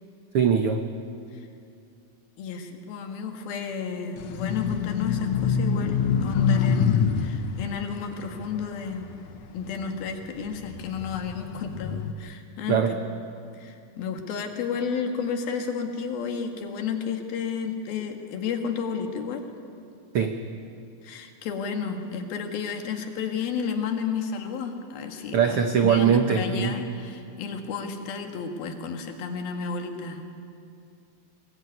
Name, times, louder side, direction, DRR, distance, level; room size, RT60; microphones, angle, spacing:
voice 1, 0.3-0.8 12.7-12.9 20.1-20.4 25.3-27.0, right 7 dB, 80° right, 6 dB, 1.2 m, -22 dB
voice 2, 2.4-9.1 9.5-13.0 13.5-19.4 21.0-30.2, left 6 dB, 90° left, 5 dB, 3.8 m, -32 dB
sound 1, 4.2-9.7 10.3-12.1, left 6 dB, 70° left, 1.7 m, -26 dB
23.5 x 20.0 x 9.5 m, 2.5 s
omnidirectional pair, 4.1 m